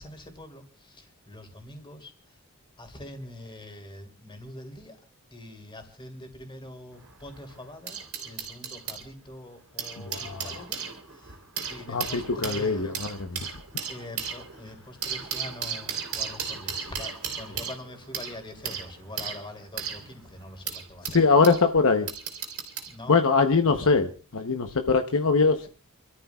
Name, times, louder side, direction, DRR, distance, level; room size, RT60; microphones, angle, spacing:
voice 1, 0.0-2.4 2.8-5.0 5.3-11.4 11.7-13.0 13.3-13.5 13.9-21.2 22.9-23.2 23.7-23.9, left 1 dB, 25° left, 3.2 m, -44 dB
sound 1, 6.9-9.0 9.6-21.6 22.1-22.9 23.8-24.0, right 7 dB, 70° right, 3.5 m, -36 dB
voice 2, 10.1-10.5 11.9-13.5 21.1-22.1 23.1-25.7, left 4 dB, 65° left, 0.9 m, -22 dB
29.0 x 13.0 x 2.4 m
head